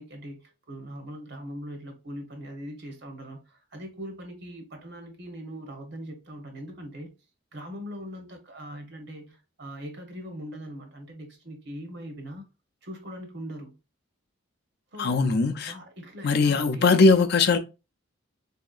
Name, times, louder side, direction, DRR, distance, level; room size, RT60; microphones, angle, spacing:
voice 1, 0.0-7.1 7.5-12.4 12.8-13.7 14.9-15.3 15.7-16.9, equal, 55° right, 0.9 m, -41 dB
voice 2, 15.0-15.7 16.2-17.6, left 4 dB, 50° left, 0.5 m, -20 dB
4.1 x 2.7 x 2.4 m
head